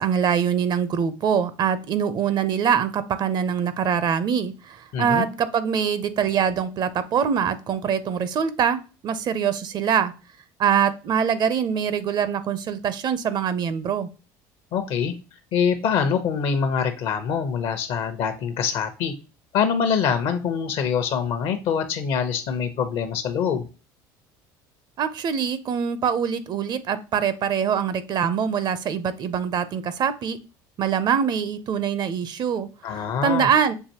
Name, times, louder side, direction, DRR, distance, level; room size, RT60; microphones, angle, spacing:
voice 1, 0.0-10.1 10.6-14.1 25.0-30.4 30.8-33.7, right 7 dB, 45° right, 0.6 m, -24 dB
voice 2, 4.9-5.3 14.7-15.1 15.5-19.1 19.5-23.7 32.8-33.5, left 7 dB, 65° left, 0.8 m, -24 dB
6.7 x 2.6 x 2.9 m
supercardioid pair, 90°, 10 cm